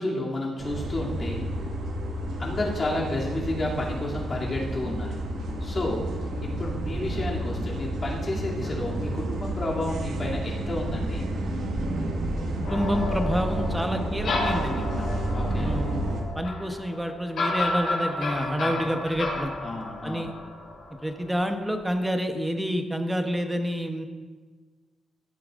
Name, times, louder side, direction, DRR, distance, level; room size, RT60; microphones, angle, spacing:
voice 1, 0.0-1.4 2.4-5.1 5.6-6.1 6.4-11.2 15.3-15.7 18.4-18.7 19.6-20.3, left 1 dB, 35° left, -4 dB, 2.6 m, -31 dB
sound 1, 0.6-16.2, right 1 dB, 80° right, 1.5 m, -30 dB
sound 2, 12.6-21.5, left 2 dB, 65° left, 3.3 m, -32 dB
voice 2, 12.7-15.1 15.5-16.0 16.3-19.5 20.0-20.3 21.0-24.1, equal, 5° right, 5 dB, 0.9 m, -28 dB
16.0 x 8.5 x 2.5 m, 1.4 s
cardioid pair, 110°, 0 cm